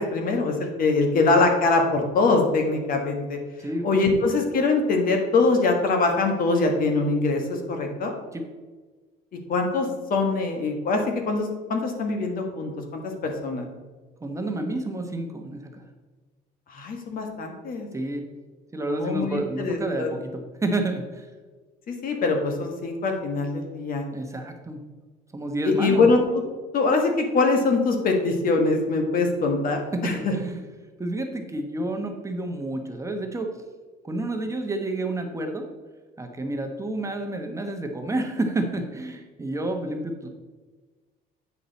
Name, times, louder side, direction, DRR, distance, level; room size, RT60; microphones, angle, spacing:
voice 1, 0.0-3.4 3.8-8.1 9.5-13.7 16.7-17.9 18.9-20.1 21.9-24.0 25.6-26.2 26.7-30.3, left 3 dB, 55° left, 3 dB, 1.5 m, -23 dB
voice 2, 3.6-3.9 8.3-8.4 14.2-15.8 17.9-18.2 18.7-20.3 20.6-21.3 24.1-24.8 25.3-26.1 29.9-30.6 31.0-33.5 34.0-35.7 36.2-40.3, right 2 dB, 15° right, 4 dB, 1.0 m, -29 dB
8.5 x 6.1 x 4.1 m, 1.3 s
cardioid pair, 110°, 17 cm